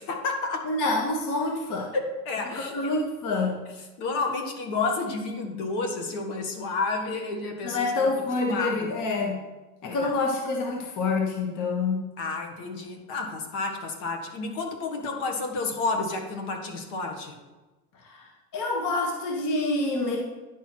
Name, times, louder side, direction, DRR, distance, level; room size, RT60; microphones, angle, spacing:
voice 1, 0.0-0.7 1.9-2.7 4.0-8.1 8.4-8.9 9.9-10.1 12.2-17.3, left 3 dB, 60° left, 3 dB, 1.8 m, -30 dB
voice 2, 0.6-1.9 2.6-3.6 7.6-9.4 9.8-12.0 17.9-20.2, left 3 dB, 40° left, 0 dB, 1.5 m, -27 dB
10.5 x 4.6 x 4.5 m, 1.1 s
supercardioid pair, 125°, 48 cm